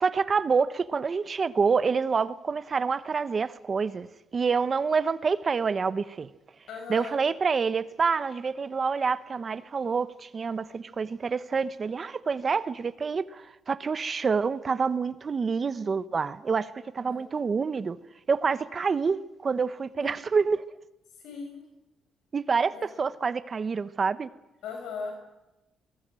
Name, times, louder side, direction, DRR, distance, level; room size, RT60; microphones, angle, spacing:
voice 1, 0.0-4.1 4.3-6.3 6.9-18.0 18.3-20.6 22.3-24.3, right 5 dB, 40° right, 1.1 m, -27 dB
voice 2, 6.7-7.2 17.0-17.2 20.0-20.2 21.2-21.7 22.7-22.9 24.6-25.2, left 5 dB, 85° left, 5.6 m, -38 dB
25.0 x 20.0 x 7.7 m
cardioid pair, 90°, 0 cm